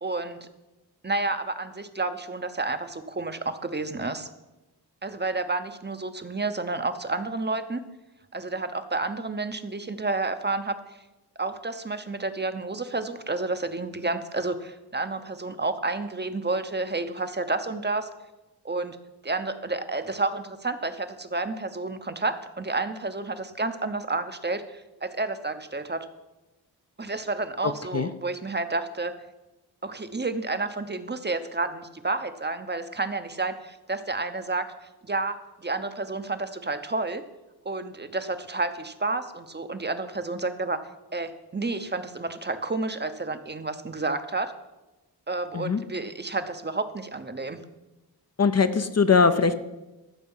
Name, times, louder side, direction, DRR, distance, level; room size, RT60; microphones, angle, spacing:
voice 1, 0.0-0.5 1.0-4.3 5.0-7.8 8.3-10.8 11.4-18.1 18.6-19.0 19.2-26.1 27.0-29.1 29.8-34.7 35.0-37.2 37.6-40.8 41.1-44.5 45.3-47.6, right 3 dB, 25° right, 9 dB, 0.7 m, -30 dB
voice 2, 48.4-49.5, left 5 dB, 40° left, 10 dB, 0.6 m, -21 dB
14.0 x 6.7 x 5.5 m, 1.0 s
wide cardioid pair, 90°, 40 cm